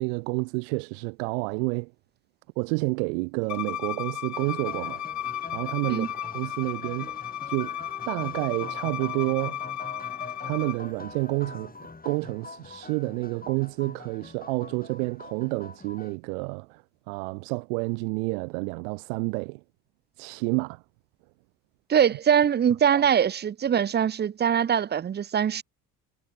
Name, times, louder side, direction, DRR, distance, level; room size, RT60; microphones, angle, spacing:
voice 1, 0.0-1.9 2.6-5.0 5.5-6.1 6.3-7.8 8.1-9.7 10.4-11.7 12.0-19.6 20.2-20.8 22.9-23.0, right 35 dB, 85° right, 1.3 m, -29 dB
Bowed string instrument, 3.5-10.8, left 11 dB, 45° left, 0.9 m, -34 dB
sound 1, 4.3-16.2, left 3 dB, 20° left, 5.4 m, -44 dB
voice 2, 21.9-25.6, right 8 dB, 25° right, 0.4 m, -22 dB
hypercardioid pair, 55°, 39 cm